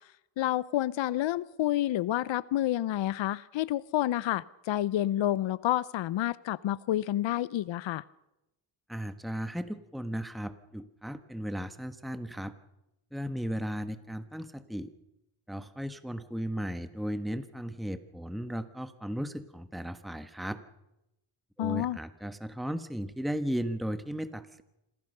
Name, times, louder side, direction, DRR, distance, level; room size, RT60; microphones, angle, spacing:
voice 1, 0.4-8.0 21.6-22.0, left 13 dB, 70° left, 17 dB, 0.7 m, -29 dB
voice 2, 8.9-12.5 13.1-14.9 15.5-20.6 21.6-24.6, equal, ahead, 10 dB, 1.3 m, -36 dB
26.5 x 16.0 x 6.6 m, 0.91 s
cardioid pair, 80°, 48 cm